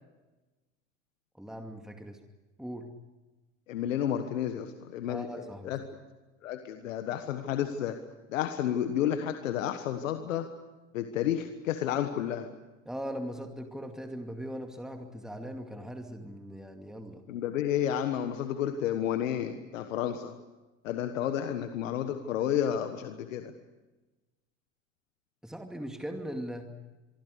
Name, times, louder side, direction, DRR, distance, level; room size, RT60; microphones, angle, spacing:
voice 1, 1.4-2.2 2.6-2.9 5.1-5.7 12.9-17.2 25.4-26.7, equal, ahead, 4 dB, 2.4 m, -40 dB
voice 2, 3.7-5.8 6.4-8.0 8.3-10.5 10.9-12.5 17.3-20.3 20.8-23.5, left 10 dB, 85° left, 8 dB, 1.4 m, -31 dB
25.0 x 24.0 x 6.7 m, 1.2 s
hypercardioid pair, 75°, 38 cm